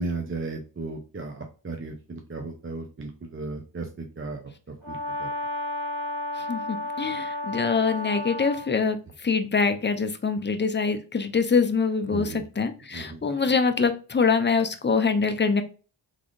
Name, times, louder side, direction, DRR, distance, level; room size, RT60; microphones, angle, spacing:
voice 1, 0.0-4.5 4.9-5.3 12.1-12.4 12.9-13.2, right 3 dB, 25° right, 3 dB, 0.6 m, -35 dB
Brass instrument, 4.8-8.7, left 1 dB, 70° right, 1.4 m, -32 dB
voice 2, 6.4-15.6, left 5 dB, 25° left, 8 dB, 0.5 m, -24 dB
3.7 x 3.4 x 2.5 m, 0.36 s
cardioid pair, 55°, 49 cm